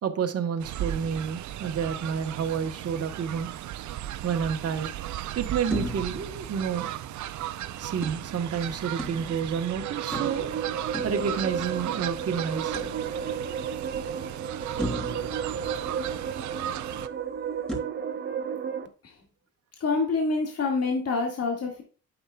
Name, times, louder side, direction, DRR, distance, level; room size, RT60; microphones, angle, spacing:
voice 1, 0.0-3.5 4.2-4.9 5.3-6.9 7.8-10.5 11.0-12.7, right 7 dB, 55° right, 1.3 m, -29 dB
Fowl, 0.6-17.1, right 12 dB, 70° right, 0.6 m, -36 dB
strange bass sound, 5.7-7.3 8.0-9.6 10.1-12.0 12.7-13.6 14.1-14.2 14.8-16.5 17.7-17.8, equal, 5° left, 3.5 m, -37 dB
sound 1, 9.4-18.9, right 7 dB, 40° right, 1.0 m, -33 dB
voice 2, 19.8-21.8, left 4 dB, 55° left, 2.1 m, -26 dB
8.8 x 7.2 x 2.3 m
cardioid pair, 90°, 30 cm